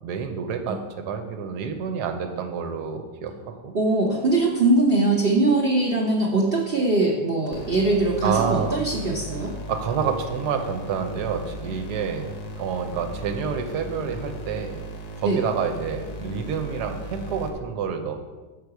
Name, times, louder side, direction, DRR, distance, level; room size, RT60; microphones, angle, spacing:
voice 1, 0.0-3.3 3.6-3.7 8.2-8.8 9.7-14.8 15.2-18.1, right 6 dB, 75° right, 6 dB, 1.3 m, -28 dB
voice 2, 3.7-9.5 15.2-15.4, right 2 dB, 50° right, -2 dB, 0.7 m, -21 dB
sound 1, 7.5-17.5, equal, 85° left, 1.6 m, -36 dB
6.5 x 5.5 x 4.7 m, 1.3 s
omnidirectional pair, 1.8 m